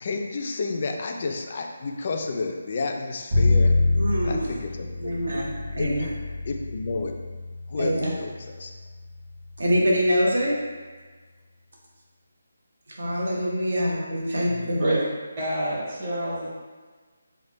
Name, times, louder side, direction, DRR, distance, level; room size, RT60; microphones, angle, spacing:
voice 1, 0.0-3.7 4.2-5.2 5.8-6.1 6.5-7.1 7.7-8.7 14.5-14.9, left 3 dB, 35° left, 3 dB, 0.3 m, -31 dB
Bowed string instrument, 3.3-9.4, left 2 dB, 50° right, 1.2 m, -26 dB
voice 2, 4.0-4.5 5.0-6.1 7.8-8.1 9.6-10.6 13.0-15.0, equal, 75° right, -4 dB, 1.0 m, -24 dB
voice 3, 15.4-16.5, equal, 30° right, -9 dB, 0.9 m, -28 dB
3.2 x 2.2 x 4.0 m, 1.4 s
hypercardioid pair, 170°, 0 cm